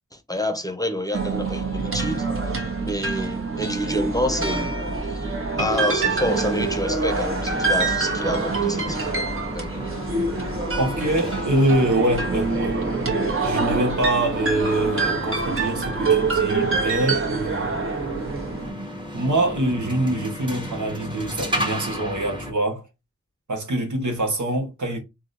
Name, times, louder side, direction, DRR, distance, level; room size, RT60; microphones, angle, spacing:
voice 1, 0.1-2.3 2.8-4.8 5.1-5.3 5.6-9.2 9.5-9.7, left 1 dB, 10° left, 0.7 m, -28 dB
sound 1, 1.1-18.7, right 4 dB, 45° right, 1.2 m, -25 dB
sound 2, 6.3-22.5, equal, 15° right, 1.2 m, -34 dB
voice 2, 10.8-12.8 13.4-17.7 19.1-22.8 23.5-25.0, right 1 dB, 80° right, 1.3 m, -24 dB
3.6 x 2.8 x 2.6 m
cardioid pair, 45°, 29 cm